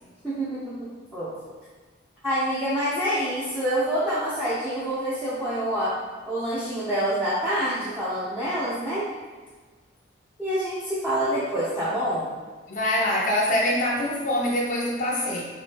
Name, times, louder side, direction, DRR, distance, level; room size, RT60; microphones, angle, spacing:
voice 1, 0.2-1.3 2.2-6.0 6.3-9.0 10.4-12.2, equal, 10° right, -11 dB, 0.7 m, -27 dB
voice 2, 12.7-15.4, left 1 dB, 40° left, -4 dB, 0.5 m, -24 dB
3.3 x 3.1 x 4.6 m, 1.4 s
head